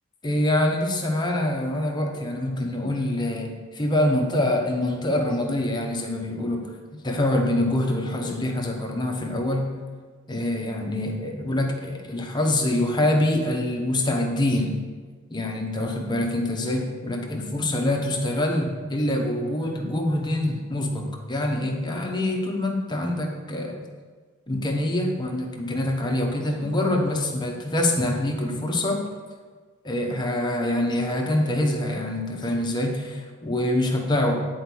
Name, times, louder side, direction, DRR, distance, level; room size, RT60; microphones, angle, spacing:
voice 1, 0.2-6.7 7.0-9.7 10.3-14.8 15.3-23.8 24.5-29.1 29.8-34.5, left 1 dB, 20° left, 1 dB, 1.0 m, -25 dB
10.0 x 4.7 x 6.2 m, 1.5 s
head